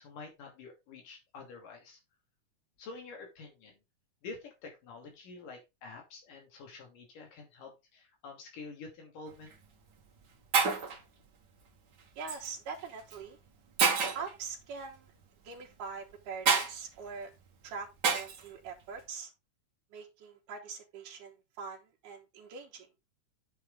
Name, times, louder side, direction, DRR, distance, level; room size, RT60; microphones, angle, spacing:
voice 1, 0.0-2.0 2.8-3.8 4.2-9.5, left 4 dB, 85° left, 4.3 m, -48 dB
Shatter, 9.3-9.5 10.2-10.3 10.5-11.0 12.3-12.5 13.1-13.2 13.8-14.3 16.5-16.7 18.0-18.4, right 5 dB, 45° right, 1.6 m, -27 dB
voice 2, 12.2-13.4 14.1-15.1 15.4-17.3 17.6-19.3 19.9-22.9, right 5 dB, 80° right, 2.7 m, -43 dB
9.6 x 6.2 x 3.6 m
omnidirectional pair, 3.7 m